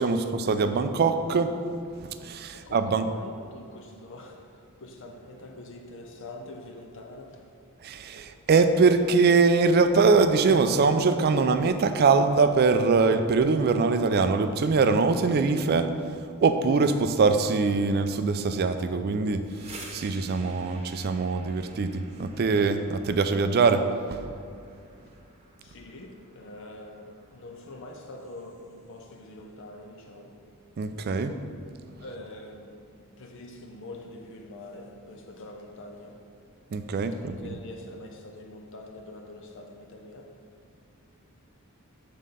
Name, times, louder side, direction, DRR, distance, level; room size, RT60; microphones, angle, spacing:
voice 1, 0.0-1.6 2.0-3.1 7.8-15.9 16.4-24.2 30.8-31.4 36.7-37.6, right 4 dB, 45° right, 9 dB, 0.3 m, -23 dB
voice 2, 2.5-7.4 25.6-30.4 32.0-32.8 33.2-36.2 37.2-40.3, left 2 dB, 55° left, 2 dB, 0.6 m, -44 dB
sound 1, 19.2-29.0, right 2 dB, 30° right, 0.9 m, -51 dB
7.4 x 3.7 x 5.4 m, 2.4 s
head